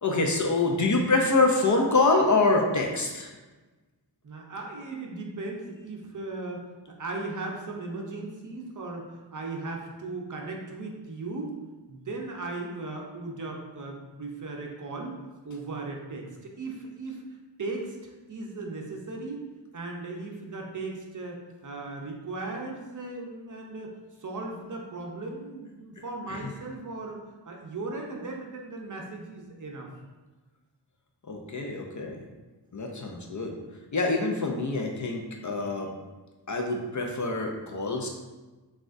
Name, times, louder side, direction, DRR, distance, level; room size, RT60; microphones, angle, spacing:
voice 1, 0.0-3.3 26.3-26.5 31.3-32.2 32.7-33.6 33.9-35.9 36.5-38.1, left 3 dB, 45° left, 1 dB, 0.5 m, -25 dB
voice 2, 4.2-11.6 11.9-15.2 15.4-17.2 17.6-19.4 19.7-27.2 27.5-29.9, right 3 dB, 45° right, 1 dB, 0.7 m, -37 dB
6.0 x 2.4 x 2.5 m, 1.2 s
wide cardioid pair, 115°, 43 cm